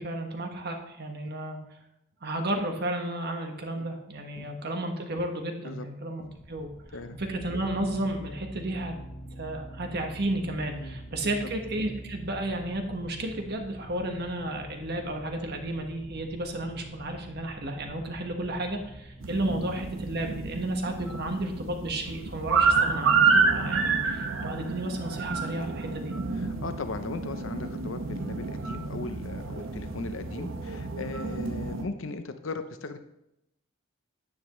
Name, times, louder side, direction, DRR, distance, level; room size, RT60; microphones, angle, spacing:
voice 1, 0.0-1.6 2.2-6.7 7.2-8.9 9.3-26.1, right 1 dB, 55° right, 3 dB, 1.5 m, -33 dB
sound 1, 6.3-22.5, equal, 35° left, 1.2 m, -45 dB
sound 2, 19.2-31.8, right 5 dB, 85° right, 0.9 m, -29 dB
voice 2, 26.3-33.0, left 3 dB, 80° left, 9 dB, 0.7 m, -38 dB
9.9 x 9.4 x 3.2 m, 0.84 s
head